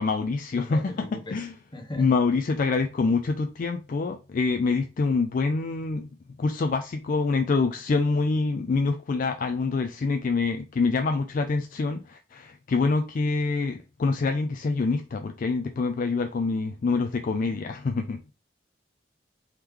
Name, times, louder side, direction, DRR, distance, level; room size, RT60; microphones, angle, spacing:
voice 1, 0.0-1.5 2.0-6.1 6.4-18.2, left 4 dB, 50° left, 0.4 m, -26 dB
voice 2, 0.6-1.5 1.7-2.1, left 2 dB, 30° left, 1.0 m, -39 dB
3.6 x 3.0 x 3.3 m
head